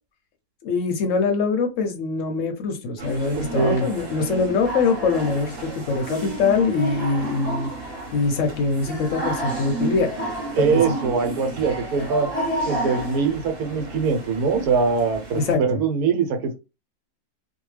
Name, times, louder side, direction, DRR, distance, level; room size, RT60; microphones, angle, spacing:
voice 1, 0.6-10.1 10.6-11.0 15.3-15.8, left 4 dB, 65° left, 6 dB, 0.8 m, -23 dB
sound 1, 3.0-15.5, right 1 dB, 40° right, 1.1 m, -31 dB
voice 2, 3.3-3.9 10.5-12.3 12.7-16.6, right 5 dB, 75° right, 5 dB, 1.1 m, -22 dB
2.6 x 2.2 x 3.1 m, 0.28 s
omnidirectional pair, 1.7 m